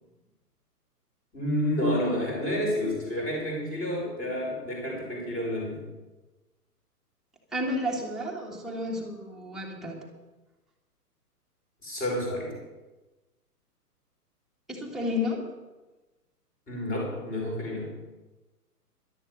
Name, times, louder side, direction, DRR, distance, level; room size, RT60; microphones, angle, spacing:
voice 1, 1.3-5.8 11.8-12.6 16.7-17.9, left 1 dB, 15° left, -1 dB, 5.3 m, -29 dB
voice 2, 7.5-10.0 14.7-15.5, left 2 dB, ahead, -3 dB, 1.7 m, -31 dB
12.5 x 12.0 x 6.2 m, 1.1 s
figure-of-eight pair, 130°, 48 cm